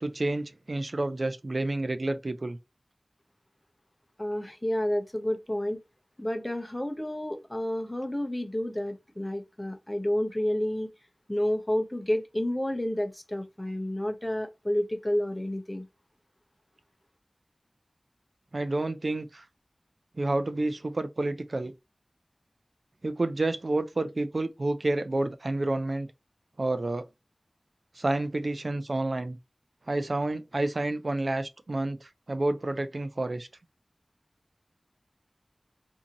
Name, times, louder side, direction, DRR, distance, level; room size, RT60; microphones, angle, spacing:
voice 1, 0.0-2.6 18.5-19.4 20.2-21.7 23.0-26.1 26.6-27.1 28.0-29.4 29.9-33.5, right 2 dB, 65° right, 0.3 m, -29 dB
voice 2, 4.2-5.8 6.2-10.9 11.3-15.8, left 1 dB, 20° left, 0.7 m, -30 dB
2.7 x 2.6 x 2.5 m
wide cardioid pair, 55°, 0 cm